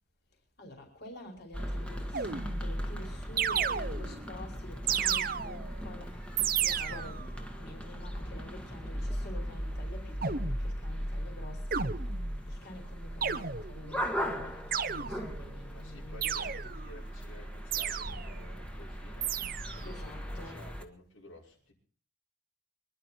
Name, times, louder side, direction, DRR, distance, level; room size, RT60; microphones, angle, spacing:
voice 1, 0.6-12.0 12.5-16.8 19.8-20.6, left 1 dB, 50° left, 2 dB, 5.0 m, -48 dB
sound 1, 1.5-20.8, equal, 5° left, 1.5 m, -38 dB
sound 2, 2.1-2.8 3.4-4.3 4.9-5.8 6.4-7.3 10.2-10.7 11.7-12.4 13.2-13.9 14.7-15.5 16.2-16.9 17.7-18.4 19.2-19.9, right 8 dB, 45° right, 0.9 m, -33 dB
voice 2, 15.6-19.4 19.7-21.7, left 1 dB, 90° left, -3 dB, 6.1 m, -53 dB
25.0 x 11.0 x 4.5 m, 0.41 s
head